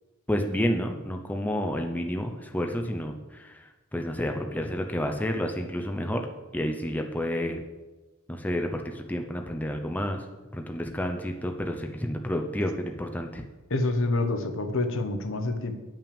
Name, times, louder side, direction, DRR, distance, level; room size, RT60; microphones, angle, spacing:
voice 1, 0.3-6.3 6.5-7.6 8.3-10.2 10.5-13.4, equal, 10° left, 3 dB, 0.6 m, -30 dB
voice 2, 13.7-15.8, left 2 dB, 65° left, 7 dB, 1.0 m, -27 dB
8.9 x 5.9 x 6.9 m, 1.2 s
head